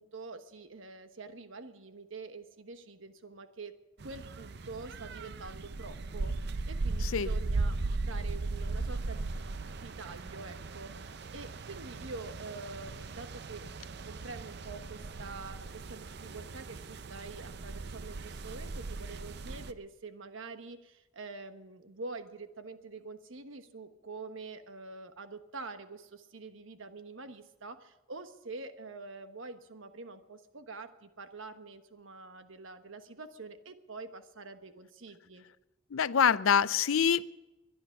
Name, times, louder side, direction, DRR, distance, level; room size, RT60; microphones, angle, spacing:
voice 1, 0.0-3.8 4.0-13.7 14.0-35.4, right 3 dB, 75° right, 9 dB, 1.2 m, -46 dB
sound 1, 4.0-19.7, right 3 dB, 50° right, 0.6 m, -38 dB
voice 2, 35.9-37.2, left 7 dB, 80° left, 17 dB, 0.5 m, -25 dB
22.5 x 11.0 x 5.8 m, 1.0 s
head